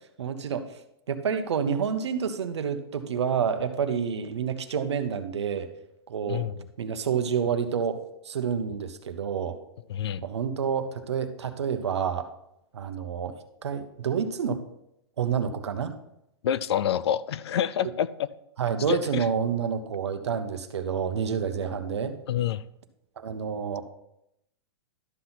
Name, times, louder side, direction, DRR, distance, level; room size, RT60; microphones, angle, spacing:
voice 1, 0.2-0.7 1.1-5.7 6.1-6.4 6.8-8.0 8.2-9.6 10.2-12.3 12.7-13.4 13.6-14.6 15.2-15.9 18.6-22.1 23.2-23.8, right 7 dB, 85° right, 8 dB, 1.1 m, -28 dB
voice 2, 6.3-6.6 9.9-10.2 16.4-18.3 18.9-19.2 22.3-22.6, left 10 dB, 75° left, 17 dB, 0.5 m, -27 dB
12.0 x 6.0 x 4.1 m, 0.81 s
hypercardioid pair, 135°, 14 cm